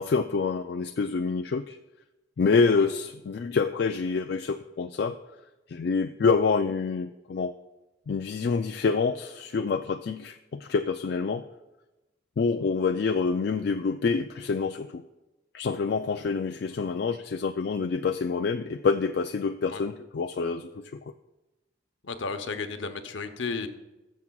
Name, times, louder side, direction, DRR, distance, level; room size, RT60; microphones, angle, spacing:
voice 1, 0.0-1.8 2.4-5.2 5.7-7.5 8.1-11.4 12.4-15.0 15.5-21.0, left 4 dB, 55° left, 6 dB, 0.3 m, -27 dB
voice 2, 22.0-23.7, left 4 dB, 70° left, 7 dB, 0.8 m, -33 dB
20.0 x 7.3 x 2.3 m, 1.0 s
head